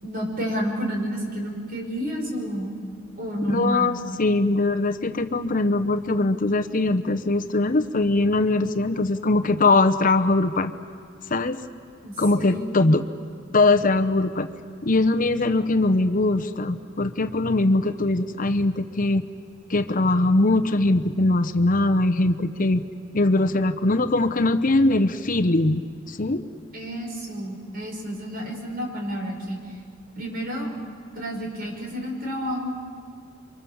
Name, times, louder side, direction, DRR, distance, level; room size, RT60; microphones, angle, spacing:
voice 1, 0.0-2.7 3.2-4.0 12.0-12.6 26.7-29.6 30.2-30.7 31.1-32.8, equal, 50° right, 1 dB, 5.8 m, -30 dB
voice 2, 3.5-10.7 11.3-11.6 12.2-13.0 13.5-14.5 14.8-19.2 19.7-22.8 23.1-25.8 26.1-26.4, left 2 dB, 45° left, 9 dB, 0.9 m, -21 dB
29.5 x 25.0 x 7.2 m, 2.1 s
head